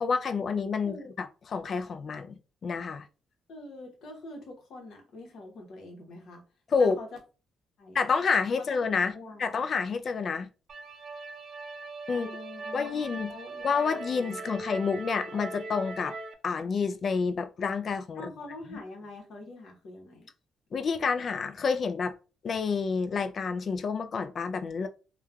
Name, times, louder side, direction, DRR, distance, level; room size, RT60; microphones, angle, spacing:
voice 1, 0.0-3.1 6.7-7.0 7.9-9.1 9.4-10.5 12.1-12.3 12.7-13.3 13.6-16.2 16.4-18.3 18.7-18.8 20.7-22.1 22.4-24.9, left 5 dB, 50° left, 0.3 m, -29 dB
voice 2, 3.5-6.4 6.8-7.1 7.8-8.0 8.6-8.7 9.1-9.4 12.1-14.5 18.1-20.3, left 2 dB, 70° left, 0.9 m, -45 dB
sound 1, 10.7-16.3, right 3 dB, 60° right, 0.4 m, -40 dB
3.1 x 2.2 x 2.3 m
cardioid pair, 90°, 0 cm